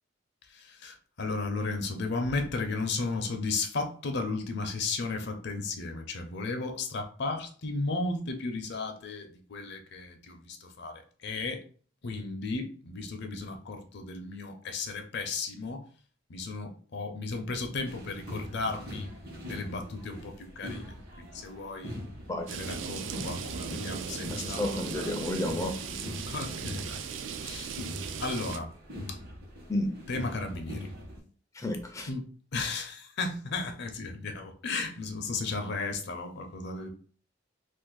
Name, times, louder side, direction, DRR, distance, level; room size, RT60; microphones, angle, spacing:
voice 1, 0.5-11.6 12.0-15.8 16.3-19.1 19.5-20.9 21.2-22.0 22.5-25.1 26.3-27.0 27.4-27.7 28.2-28.7 29.1-29.2 30.1-30.9 32.1-36.9, left 3 dB, 60° left, 0.6 m, -34 dB
sound 1, 17.9-31.2, left 1 dB, 55° right, 1.0 m, -42 dB
sound 2, 22.5-28.6, right 7 dB, 75° right, 0.4 m, -38 dB
voice 2, 24.3-25.9 29.7-29.9 31.5-32.1, left 1 dB, 15° left, 0.4 m, -31 dB
2.5 x 2.5 x 3.8 m
head